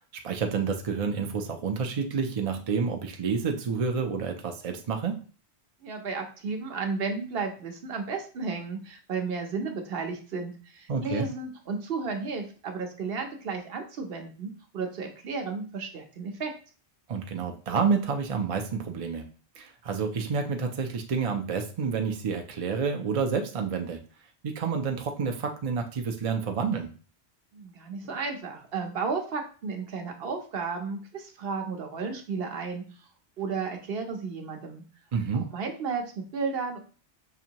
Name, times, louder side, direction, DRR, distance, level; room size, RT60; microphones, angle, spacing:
voice 1, 0.2-5.2 10.9-11.3 17.1-19.3 19.6-24.0 24.4-26.9 35.1-35.4, right 5 dB, 45° right, 4 dB, 0.5 m, -29 dB
voice 2, 5.8-16.5 27.5-32.8 33.4-34.8 35.3-36.8, right 4 dB, 65° right, 4 dB, 0.9 m, -33 dB
5.8 x 2.6 x 2.9 m, 0.38 s
omnidirectional pair, 1.1 m